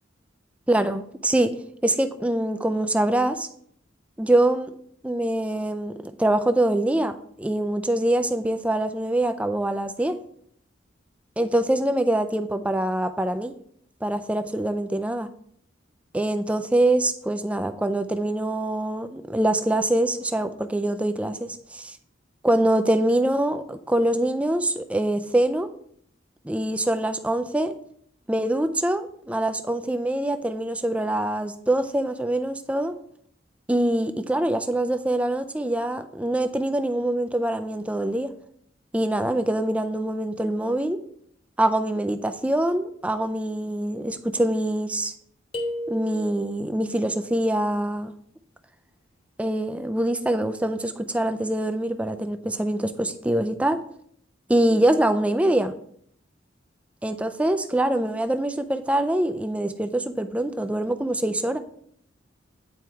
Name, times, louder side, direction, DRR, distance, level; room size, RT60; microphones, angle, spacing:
voice 1, 0.7-1.5 1.8-3.5 4.2-4.7 5.0-10.2 11.4-13.5 14.0-15.3 16.1-22.0 22.4-25.7 26.4-27.7 28.3-32.9 33.7-38.3 38.9-41.0 41.6-45.1 45.9-48.1 49.4-53.8 54.5-55.7 57.0-61.6, right 1 dB, 5° right, 0.3 m, -24 dB
sound 1, 45.5-46.7, left 1 dB, 30° left, 1.2 m, -32 dB
9.2 x 4.5 x 3.5 m
head